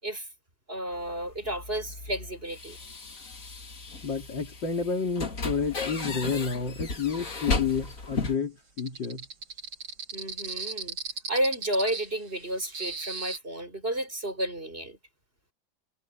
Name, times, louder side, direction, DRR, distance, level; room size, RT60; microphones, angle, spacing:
voice 1, 0.7-2.8 10.1-11.0 11.3-15.0, right 1 dB, 30° right, 6.8 m, -31 dB
sound 1, 0.9-8.4, left 3 dB, 45° left, 2.6 m, -35 dB
voice 2, 4.0-9.2, left 5 dB, 70° left, 3.7 m, -30 dB
sound 2, 8.8-13.4, right 5 dB, 60° right, 2.9 m, -37 dB
omnidirectional pair, 2.1 m